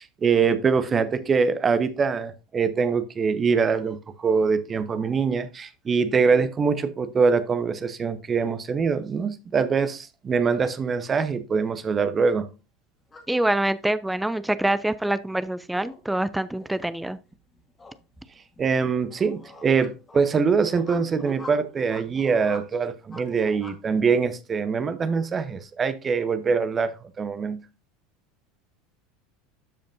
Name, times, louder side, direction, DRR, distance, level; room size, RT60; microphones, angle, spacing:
voice 1, 0.0-12.5 18.6-27.6, right 5 dB, 25° right, 0.8 m, -23 dB
sound 1, 13.0-23.8, left 2 dB, 15° left, 1.9 m, -47 dB
voice 2, 13.3-17.2, right 1 dB, 5° right, 0.4 m, -25 dB
12.5 x 5.1 x 2.6 m
figure-of-eight pair, 75°, 0 cm